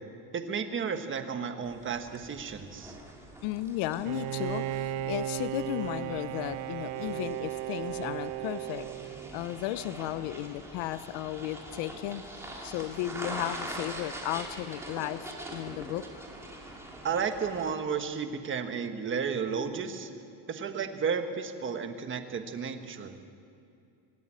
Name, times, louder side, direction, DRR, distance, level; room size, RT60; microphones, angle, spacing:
voice 1, 0.3-3.0 17.0-20.1 20.5-23.1, right 6 dB, 25° right, 7 dB, 1.3 m, -33 dB
sound 1, 1.6-17.7, right 1 dB, 5° right, 2.8 m, -44 dB
voice 2, 3.4-8.8 9.3-16.3, left 13 dB, 65° left, 13 dB, 0.8 m, -35 dB
Bowed string instrument, 4.0-9.6, right 13 dB, 75° right, 0.8 m, -35 dB
25.0 x 11.0 x 9.9 m, 2.5 s
cardioid pair, 160°, 49 cm